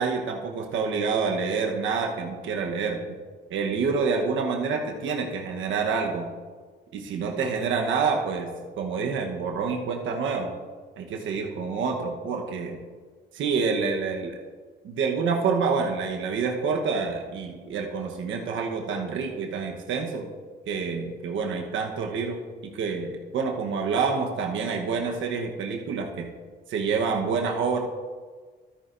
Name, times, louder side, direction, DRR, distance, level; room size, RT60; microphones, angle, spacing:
voice 1, 0.0-3.2 3.5-6.3 6.9-10.5 11.0-12.8 13.3-14.4 14.8-20.3 20.7-22.4 22.7-26.3 26.7-27.8, right 5 dB, 75° right, 2 dB, 1.1 m, -27 dB
13.0 x 9.1 x 2.6 m, 1.5 s
cardioid pair, 90°, 20 cm